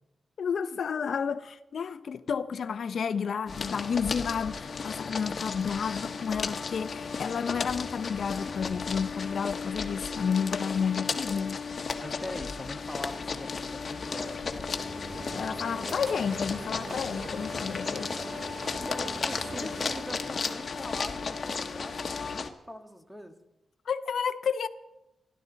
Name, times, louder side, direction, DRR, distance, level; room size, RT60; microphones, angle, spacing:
voice 1, 0.4-11.6 15.3-18.1 19.6-19.7 23.9-24.7, left 6 dB, 70° left, 0.8 m, -31 dB
sound 1, 3.5-22.5, left 5 dB, 50° left, 1.4 m, -34 dB
voice 2, 12.0-14.4 18.8-23.4, left 1 dB, ahead, 1.7 m, -42 dB
sound 2, 13.9-21.2, right 4 dB, 55° right, 0.7 m, -44 dB
28.5 x 12.0 x 4.1 m
cardioid pair, 90°, 0 cm